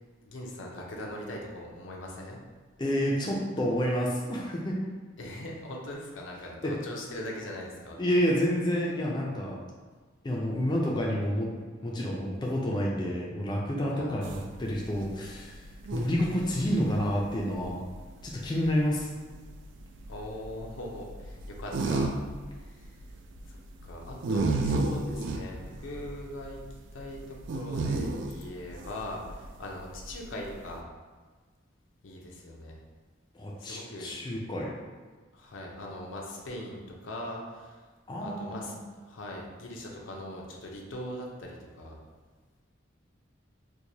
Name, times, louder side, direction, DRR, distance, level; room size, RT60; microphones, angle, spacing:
voice 1, 0.2-2.4 5.2-8.0 13.9-14.4 20.1-22.2 22.6-22.9 23.5-26.6 26.9-30.9 32.0-32.8 33.6-34.2 35.3-37.8 38.2-38.8 39.1-42.0, left 1 dB, 80° left, -1 dB, 0.6 m, -40 dB
voice 2, 2.8-4.8 6.6-6.7 8.0-9.6 10.2-11.5 11.8-15.6 15.9-17.8 18.2-19.1 33.3-34.8 38.1-38.8, equal, 20° left, -3 dB, 0.4 m, -29 dB
sound 1, 14.2-30.8, right 3 dB, 65° right, 0.3 m, -34 dB
4.5 x 2.2 x 2.7 m, 1.4 s
head